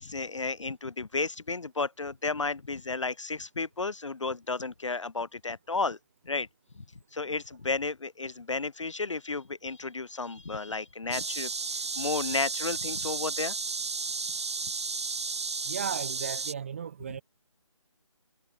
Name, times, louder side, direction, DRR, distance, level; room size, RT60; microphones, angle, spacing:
voice 1, 0.0-6.0 6.3-6.5 7.1-11.5 12.0-13.5, left 3 dB, 65° left, 2.3 m, -32 dB
sound 1, 11.1-16.5, right 4 dB, 55° right, 1.0 m, -33 dB
voice 2, 15.6-17.2, right 7 dB, 25° right, 1.6 m, -35 dB
figure-of-eight pair, 170°, 17 cm